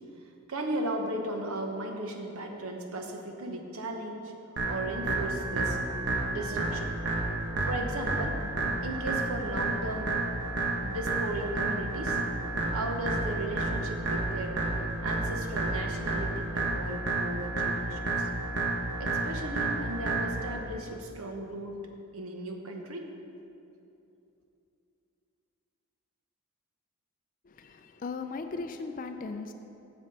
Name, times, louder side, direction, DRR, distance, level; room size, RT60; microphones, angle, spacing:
voice 1, 0.5-4.3 4.6-5.8 6.3-6.9 7.6-8.4 8.8-10.1 10.8-12.2 12.7-14.6 15.0-18.3 19.0-21.9 22.1-23.1, right 1 dB, 75° right, 3 dB, 1.0 m, -36 dB
sound 1, 4.6-20.5, right 2 dB, 55° right, 1.3 m, -31 dB
voice 2, 27.5-29.5, left 4 dB, 35° left, 7 dB, 0.3 m, -37 dB
7.6 x 7.4 x 5.3 m, 2.8 s
head